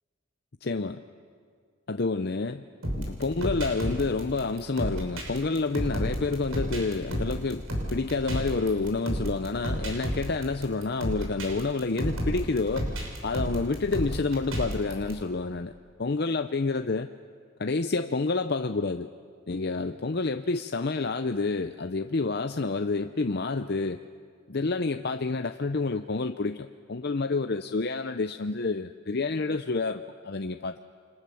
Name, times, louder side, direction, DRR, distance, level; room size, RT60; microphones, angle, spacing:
voice 1, 0.6-1.0 1.9-2.6 3.0-7.6 7.9-15.7 16.0-17.1 17.6-19.1 19.5-24.0 24.5-30.8, left 3 dB, 50° left, 7 dB, 0.6 m, -29 dB
sound 1, 2.8-15.1, equal, 80° right, 6.3 m, -32 dB
30.0 x 24.5 x 7.1 m, 2.1 s
head